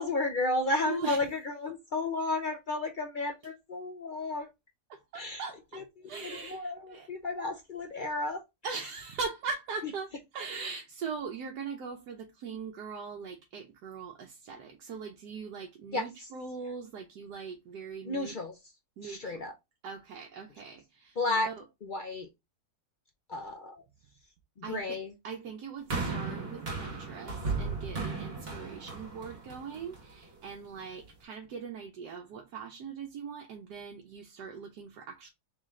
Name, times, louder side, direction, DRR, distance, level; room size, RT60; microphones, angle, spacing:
voice 1, 0.0-4.5 5.1-5.4 5.7-5.8 6.2-8.4 15.9-16.1 18.0-18.6 19.0-19.5 21.2-21.5 21.8-22.3 23.3-23.8 24.7-25.1, left 2 dB, 60° left, 0.5 m, -32 dB
voice 2, 0.8-1.2 4.9-7.1 8.6-18.3 19.0-19.4 19.8-21.2 21.4-21.6 24.6-25.0 25.2-35.3, right 5 dB, 85° right, 1.3 m, -41 dB
sound 1, 25.9-30.3 31.0-31.1, right 4 dB, 40° right, 1.8 m, -36 dB
3.7 x 3.2 x 3.6 m
omnidirectional pair, 1.7 m